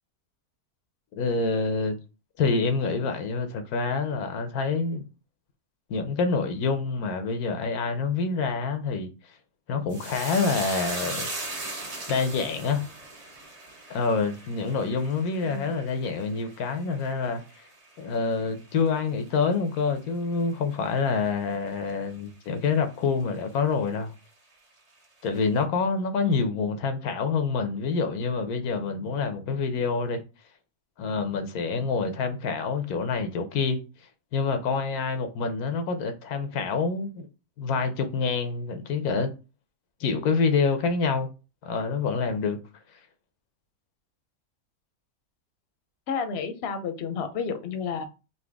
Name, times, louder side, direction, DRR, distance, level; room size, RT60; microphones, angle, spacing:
voice 1, 1.2-2.0 2.4-5.0 5.9-9.1 9.7-11.3 12.1-12.9 13.9-17.4 18.0-24.1 25.2-30.2 31.0-33.8 34.3-37.3 37.6-39.3 40.0-41.3 41.6-42.6, left 4 dB, 85° left, 1.2 m, -27 dB
sound 1, 9.9-18.5 18.8-19.5 19.8-20.0, right 2 dB, 30° right, 0.8 m, -38 dB
voice 2, 46.1-48.0, left 6 dB, 55° left, 0.8 m, -31 dB
4.0 x 2.8 x 3.4 m
omnidirectional pair, 1.5 m